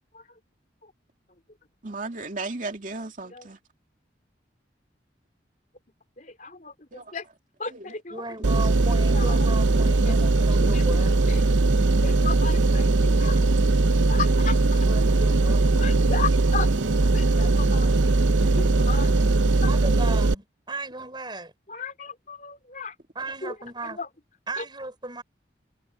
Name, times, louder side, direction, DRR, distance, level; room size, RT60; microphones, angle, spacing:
voice 1, 1.8-3.6 6.9-7.0 7.7-7.9, right 3 dB, 45° right, 2.5 m, -35 dB
voice 2, 6.2-7.2 7.6-8.2 9.1-9.4 9.8-10.1 10.5-11.8 12.0-13.4 14.1-14.8 15.8-16.7 17.1-18.1 18.4-19.1 21.7-22.9 23.4-23.5 24.0-24.1 24.6-24.7, left 4 dB, 45° left, 4.3 m, -35 dB
voice 3, 8.1-11.2 14.7-16.1 19.7-21.5 23.2-24.0 24.5-25.2, right 2 dB, 25° right, 5.5 m, -36 dB
sound 1, 8.4-20.3, right 2 dB, 85° right, 0.8 m, -20 dB
head